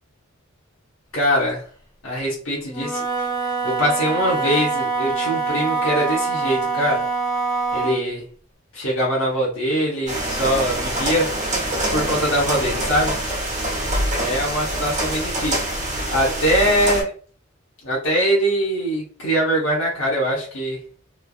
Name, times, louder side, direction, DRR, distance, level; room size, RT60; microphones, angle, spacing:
voice 1, 1.1-1.6 2.0-3.0 3.4-7.1 7.7-8.2 8.7-11.3 11.9-13.2 14.1-15.6 16.1-17.1 17.8-20.8, equal, 70° left, -4 dB, 0.9 m, -22 dB
Wind instrument woodwind instrument, 2.7-8.1, right 4 dB, 20° left, 0.7 m, -24 dB
sound 1, 10.1-17.0, right 1 dB, 35° right, 1.1 m, -25 dB
3.2 x 2.4 x 2.3 m, 0.43 s
head